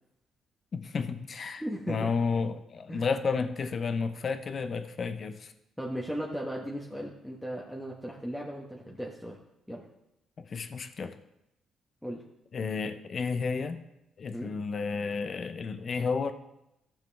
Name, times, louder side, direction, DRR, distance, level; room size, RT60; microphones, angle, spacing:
voice 1, 0.7-5.5 10.4-11.2 12.5-13.8 14.2-16.3, left 5 dB, 45° left, 9 dB, 0.9 m, -32 dB
voice 2, 1.6-2.1 2.9-3.0 5.8-9.4 9.7-9.8 12.0-12.2 14.3-14.5, equal, ahead, -3 dB, 1.4 m, -36 dB
15.0 x 6.7 x 3.5 m, 0.86 s
cardioid pair, 90°, 0 cm